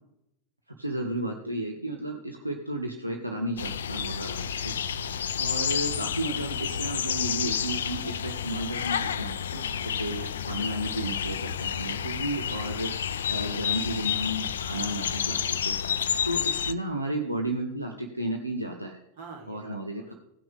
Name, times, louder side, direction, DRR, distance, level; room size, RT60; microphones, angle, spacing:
voice 1, 0.8-4.7 5.4-9.4 10.0-15.8 16.2-19.0 19.5-20.1, right 1 dB, 85° right, 2 dB, 0.9 m, -33 dB
sound 1, 3.6-16.7, left 8 dB, 65° left, 0.4 m, -30 dB
voice 2, 5.0-5.4 9.5-9.9 15.9-16.3 19.2-20.1, right 4 dB, 55° right, 1 dB, 2.6 m, -47 dB
17.0 x 6.1 x 3.4 m, 0.82 s
figure-of-eight pair, 90°, 0 cm